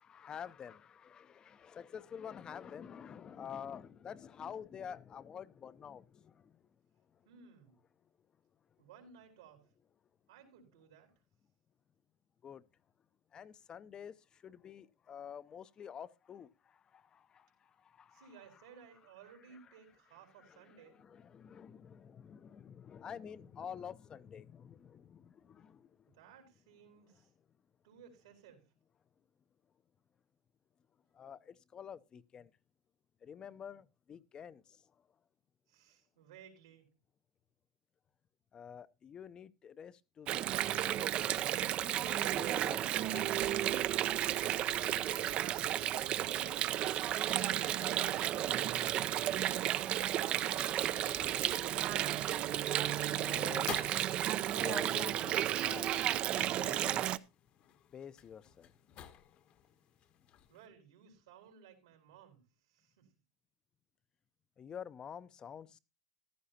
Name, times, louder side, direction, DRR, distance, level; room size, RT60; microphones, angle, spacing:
voice 1, 0.0-6.6 12.4-12.6 13.3-18.3 20.5-25.9 31.1-32.5 33.2-34.8 38.5-40.5 40.8-41.3 42.3-43.3 53.1-53.7 54.5-56.1 56.4-57.1 57.9-58.7 64.6-65.8, left 8 dB, 30° left, 0.7 m, -48 dB
voice 2, 7.2-7.7 8.8-9.7 10.3-11.1 18.1-21.0 26.1-27.3 27.8-28.7 35.7-36.9 60.5-63.1, right 7 dB, 85° right, 4.3 m, -58 dB
Water, 40.3-57.2, right 12 dB, 45° right, 0.5 m, -33 dB
sound 1, 49.4-60.7, left 9 dB, 45° left, 1.2 m, -52 dB
14.5 x 12.0 x 2.8 m
supercardioid pair, 110°, 3 cm